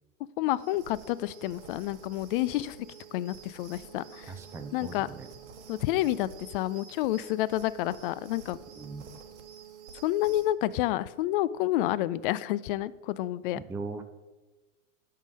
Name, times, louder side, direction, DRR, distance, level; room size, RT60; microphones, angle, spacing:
voice 1, 0.4-2.8 3.1-4.3 4.7-5.1 5.7-8.6 10.0-13.6, left 15 dB, 45° left, 19 dB, 0.4 m, -29 dB
sound 1, 0.6-10.5, right 7 dB, 60° right, 1.2 m, -49 dB
voice 2, 4.3-5.3 8.8-9.1 13.5-14.0, right 4 dB, 5° right, 7 dB, 0.5 m, -39 dB
10.5 x 3.8 x 6.2 m, 1.1 s
hypercardioid pair, 100°, 38 cm